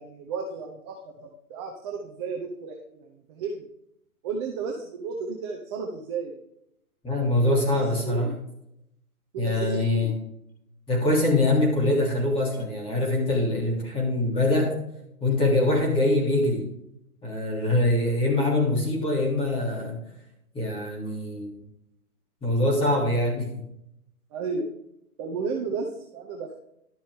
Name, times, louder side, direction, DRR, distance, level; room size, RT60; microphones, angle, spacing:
voice 1, 0.0-3.7 4.2-6.4 7.5-8.4 9.3-10.1 24.3-24.7 25.2-26.5, right 4 dB, 20° right, 0 dB, 0.8 m, -33 dB
voice 2, 7.0-8.3 9.4-10.1 10.9-14.8 15.2-16.7 17.2-20.0 20.5-21.6 22.4-23.6, left 1 dB, 10° left, -2 dB, 3.0 m, -24 dB
12.0 x 7.4 x 3.7 m, 0.78 s
hypercardioid pair, 150°, 44 cm